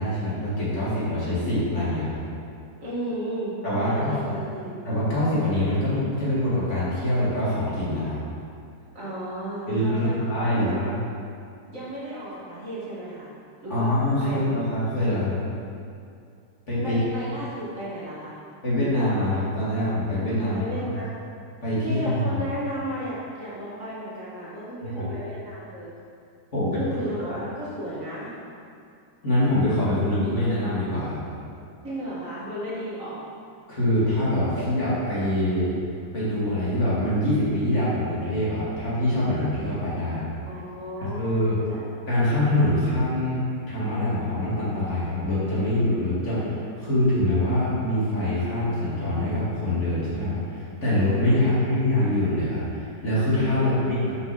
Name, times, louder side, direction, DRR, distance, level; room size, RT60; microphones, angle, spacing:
voice 1, 0.0-2.2 3.6-4.1 4.8-8.2 9.7-10.9 13.7-15.4 16.7-17.0 18.6-21.1 21.6-22.4 24.8-25.1 26.5-26.9 27.3-27.4 29.2-31.2 33.7-35.7 36.1-40.3 41.0-41.6 42.1-54.1, left 1 dB, 40° left, -10 dB, 2.6 m, -24 dB
voice 2, 2.8-4.7 8.9-10.1 10.4-10.7 11.7-13.3 13.6-13.9 14.2-14.5 16.8-18.4 20.5-21.1 21.8-25.9 26.8-28.4 31.8-33.2 40.5-41.8 51.4-51.5 53.5-54.1, right 1 dB, 50° right, -8 dB, 2.1 m, -34 dB
6.3 x 5.6 x 5.9 m, 2.4 s
omnidirectional pair, 1.9 m